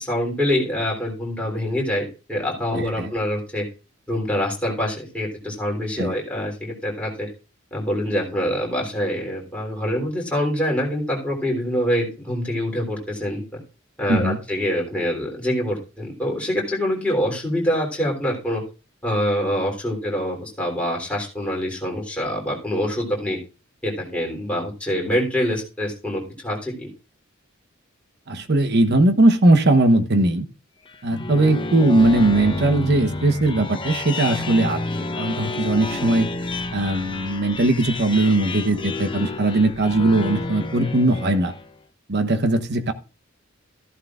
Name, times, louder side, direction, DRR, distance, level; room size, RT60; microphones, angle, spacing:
voice 1, 0.0-3.6 4.1-7.3 7.7-13.4 14.0-18.6 19.0-23.4 23.8-26.9, equal, 5° left, -2 dB, 3.4 m, -25 dB
voice 2, 2.7-3.1 6.0-6.1 14.1-14.4 28.3-30.5 31.0-36.3 36.7-41.5 42.1-42.9, right 2 dB, 55° right, 9 dB, 1.0 m, -19 dB
sound 1, 30.9-41.7, left 2 dB, 25° left, 0.8 m, -30 dB
14.0 x 11.5 x 2.5 m, 0.32 s
head